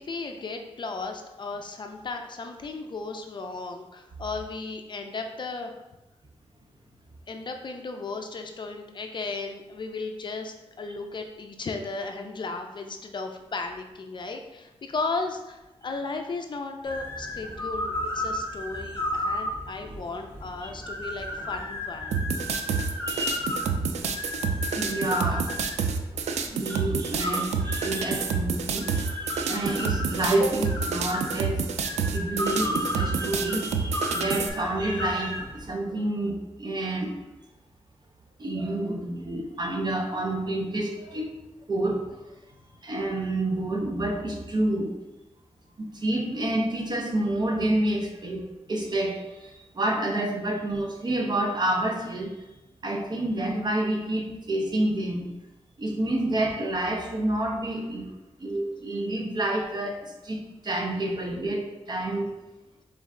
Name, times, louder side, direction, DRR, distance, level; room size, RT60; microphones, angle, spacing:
voice 1, 0.0-5.7 7.3-22.2, left 3 dB, 45° left, 4 dB, 0.4 m, -35 dB
sound 1, 16.8-35.7, left 1 dB, 20° left, 1.0 m, -34 dB
sound 2, 22.1-34.5, right 5 dB, 85° right, 0.4 m, -28 dB
voice 2, 23.1-23.6 24.8-25.5 26.5-31.6 32.1-37.2 38.4-41.3 41.7-42.2 42.8-45.0 45.8-52.4 52.8-55.3 55.8-58.1 58.4-62.3, right 1 dB, 40° right, 2 dB, 0.7 m, -28 dB
3.8 x 3.2 x 3.6 m, 0.99 s
wide cardioid pair, 115°, 11 cm